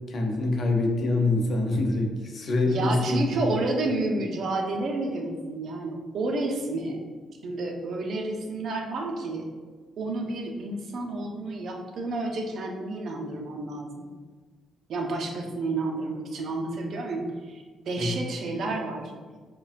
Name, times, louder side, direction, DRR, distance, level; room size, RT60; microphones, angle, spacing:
voice 1, 0.1-3.4 18.0-18.2, left 2 dB, 50° left, 2 dB, 0.6 m, -25 dB
voice 2, 2.7-7.0 7.4-9.4 10.0-14.0 14.9-19.1, right 2 dB, 65° right, 2 dB, 0.6 m, -30 dB
4.8 x 2.2 x 2.5 m, 1.4 s
cardioid pair, 90°, 0 cm